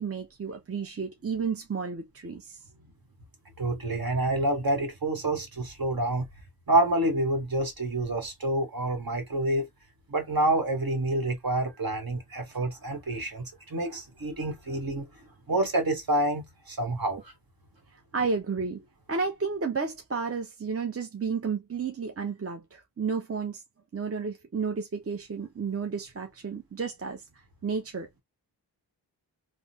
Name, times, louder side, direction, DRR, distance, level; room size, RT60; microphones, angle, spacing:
voice 1, 0.0-2.6 18.1-18.8 19.1-23.6 23.9-27.2 27.6-28.2, right 5 dB, 30° right, 0.7 m, -32 dB
voice 2, 3.6-6.3 6.7-9.7 10.1-15.1 15.5-17.3, right 1 dB, 55° right, 1.4 m, -28 dB
3.5 x 2.1 x 2.8 m
cardioid pair, 45°, 43 cm